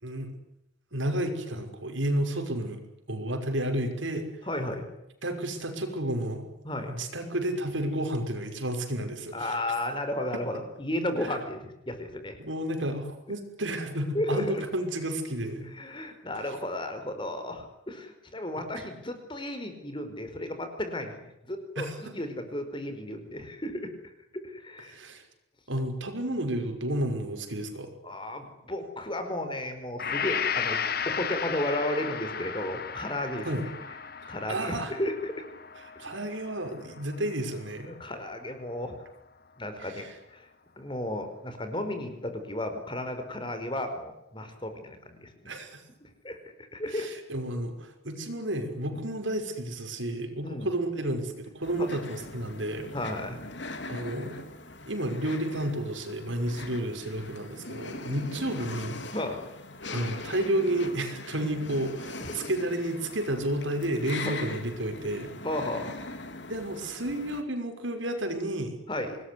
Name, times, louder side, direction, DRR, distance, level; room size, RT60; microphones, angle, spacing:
voice 1, 0.9-2.8 3.1-4.2 5.2-6.5 6.9-9.6 12.4-15.7 21.8-22.1 24.9-25.2 25.7-27.9 33.4-33.7 34.2-34.9 36.0-37.9 39.8-40.1 45.5-45.8 46.9-52.9 53.9-54.4 54.9-59.0 59.9-65.3 66.5-68.7, right 1 dB, 75° right, 5 dB, 5.9 m, -31 dB
voice 2, 4.4-4.9 6.6-6.9 9.3-12.4 14.1-14.6 15.7-23.9 24.4-25.0 28.0-30.8 31.1-33.5 34.3-35.4 37.9-38.9 39.6-40.5 40.8-45.5 46.0-46.4 46.7-47.1 48.9-49.0 50.4-50.7 51.8-51.9 52.9-53.4 59.1-59.4 62.2-62.3 65.4-65.9 68.9-69.2, left 1 dB, 25° left, 7 dB, 4.8 m, -34 dB
Gong, 30.0-38.0, left 7 dB, 50° left, 1.6 m, -35 dB
sound 1, 51.6-67.4, left 3 dB, 65° left, 3.3 m, -41 dB
26.0 x 20.5 x 9.8 m, 0.83 s
head